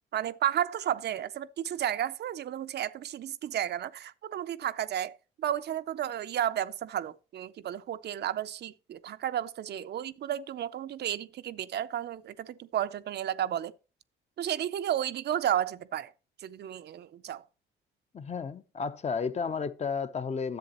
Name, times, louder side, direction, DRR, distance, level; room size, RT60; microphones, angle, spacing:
voice 1, 0.1-13.7 14.4-16.1 16.4-17.4, right 11 dB, 55° right, 0.4 m, -32 dB
voice 2, 18.1-20.6, left 5 dB, 35° left, 0.6 m, -32 dB
10.5 x 7.4 x 2.9 m
cardioid pair, 90°, 20 cm